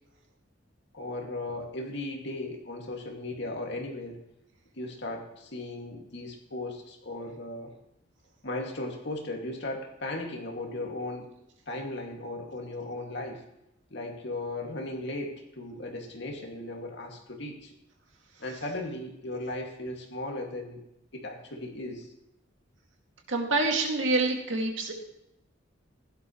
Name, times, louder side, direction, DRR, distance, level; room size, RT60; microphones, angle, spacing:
voice 1, 0.9-4.2 4.8-7.8 8.4-11.3 11.7-13.4 13.9-17.8 18.4-20.8 21.1-22.1, left 2 dB, 60° left, 2 dB, 2.3 m, -37 dB
voice 2, 23.3-24.9, right 2 dB, 75° right, 1 dB, 2.4 m, -26 dB
16.0 x 11.5 x 3.2 m, 0.83 s
head